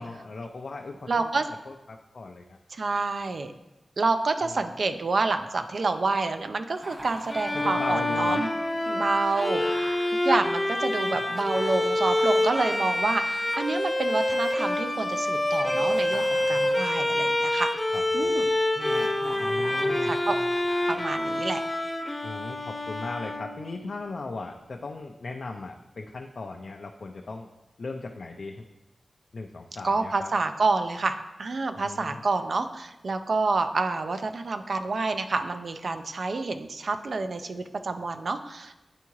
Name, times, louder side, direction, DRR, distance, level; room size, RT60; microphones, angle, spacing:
voice 1, 0.0-2.6 7.5-8.4 17.9-18.4 19.4-20.1 22.2-27.5 27.8-28.6 29.3-30.3 31.8-32.2, left 3 dB, 65° left, 2 dB, 0.4 m, -38 dB
voice 2, 1.1-1.5 2.7-3.5 4.0-8.5 8.9-9.9 10.2-17.8 18.1-18.5 20.1-20.4 20.9-21.6 29.8-38.7, right 3 dB, 65° right, 8 dB, 0.4 m, -28 dB
Laughter, 6.7-10.1 11.1-14.4 15.6-17.6 18.7-21.7, right 1 dB, 40° right, 1.5 m, -44 dB
Bowed string instrument, 7.3-23.8, left 1 dB, 15° left, 0.6 m, -27 dB
9.3 x 3.6 x 3.0 m, 1.0 s
wide cardioid pair, 90°, 0 cm